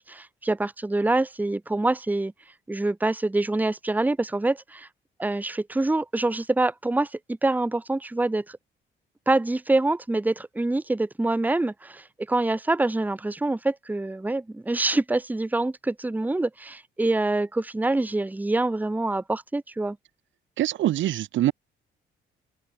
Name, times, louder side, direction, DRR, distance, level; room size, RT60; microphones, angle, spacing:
voice 1, 0.0-2.3 2.7-4.9 5.2-7.1 7.4-8.6 9.3-20.0, right 2 dB, 10° right, 0.8 m, -25 dB
voice 2, 20.6-21.5, right 13 dB, 70° right, 0.9 m, -24 dB
cardioid pair, 90°, 20 cm